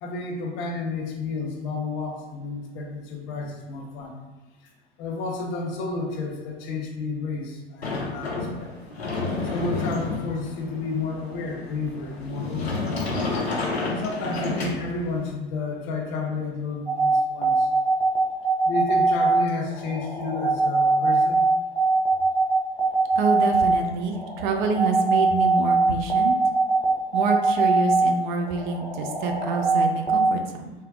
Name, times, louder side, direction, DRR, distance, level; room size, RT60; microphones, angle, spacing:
voice 1, 0.0-4.1 5.0-8.7 9.4-13.3 14.0-17.7 18.6-21.4, left 3 dB, 40° left, 0 dB, 0.7 m, -31 dB
Sliding door, 7.8-15.3, left 3 dB, 85° left, 0.7 m, -30 dB
sound 1, 16.9-30.3, right 3 dB, 5° left, 0.5 m, -22 dB
voice 2, 23.2-26.4 27.1-30.7, right 4 dB, 50° right, 4 dB, 0.5 m, -27 dB
3.4 x 2.2 x 2.3 m, 1.2 s
figure-of-eight pair, 90°, 31 cm